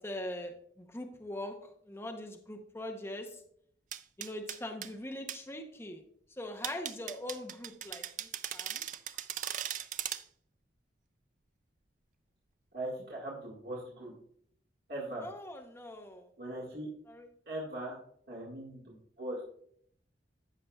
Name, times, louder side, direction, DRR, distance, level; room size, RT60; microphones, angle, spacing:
voice 1, 0.0-3.4 4.2-6.0 6.4-8.9 15.2-16.3 17.1-17.3, left 1 dB, 15° left, 4 dB, 0.7 m, -42 dB
sound 1, 3.9-4.9 5.3-5.4 6.6-10.2, right 10 dB, 45° right, 0.4 m, -38 dB
voice 2, 12.7-14.1 14.9-15.2 16.4-16.9 17.5-18.0 18.3-19.4, right 1 dB, 60° right, -4 dB, 1.7 m, -40 dB
14.0 x 5.7 x 2.3 m, 0.63 s
head